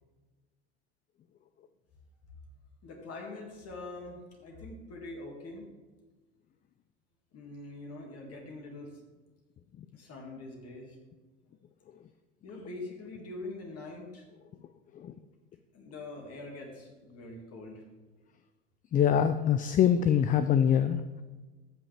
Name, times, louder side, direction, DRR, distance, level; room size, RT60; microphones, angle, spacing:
voice 1, 2.8-5.7 7.3-8.9 9.9-11.0 12.4-14.2 15.7-17.8, left 2 dB, 45° left, 0 dB, 2.2 m, -43 dB
voice 2, 18.9-21.0, left 9 dB, 25° left, 11 dB, 0.4 m, -24 dB
14.0 x 6.1 x 3.4 m, 1.3 s
hypercardioid pair, 80°, 35 cm